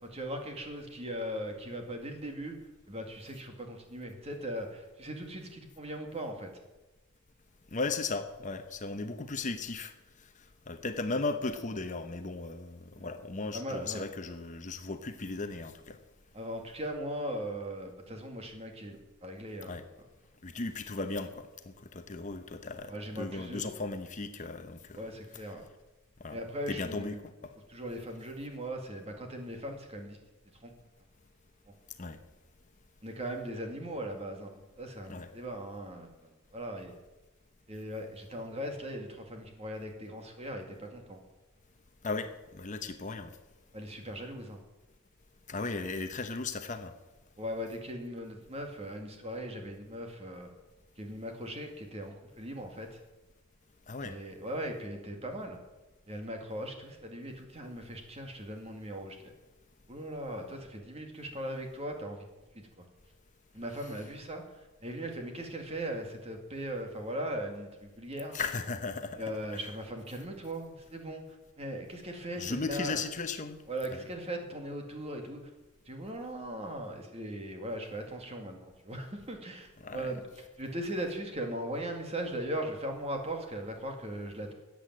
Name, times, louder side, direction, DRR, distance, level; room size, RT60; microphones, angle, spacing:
voice 1, 0.0-6.5 13.0-13.1 13.5-14.0 16.3-19.8 22.9-23.7 25.0-25.6 26.3-27.2 27.7-30.2 30.6-30.7 33.0-36.9 37.7-41.2 43.7-44.6 47.4-50.5 51.0-53.0 54.0-55.6 56.1-59.3 59.9-62.2 62.5-62.8 63.5-68.4 69.2-71.3 71.6-73.0 73.7-75.5 75.9-84.5, right 1 dB, 30° right, 3 dB, 2.1 m, -39 dB
voice 2, 7.7-9.9 10.7-16.0 19.6-19.8 20.4-25.0 26.2-26.4 26.7-27.5 32.0-32.2 35.1-35.3 42.0-43.3 45.5-46.9 53.9-54.2 68.3-69.3 72.4-73.6 73.9-74.0 79.8-80.1, left 3 dB, 35° left, 8 dB, 0.8 m, -36 dB
14.0 x 8.4 x 7.5 m, 1.1 s
head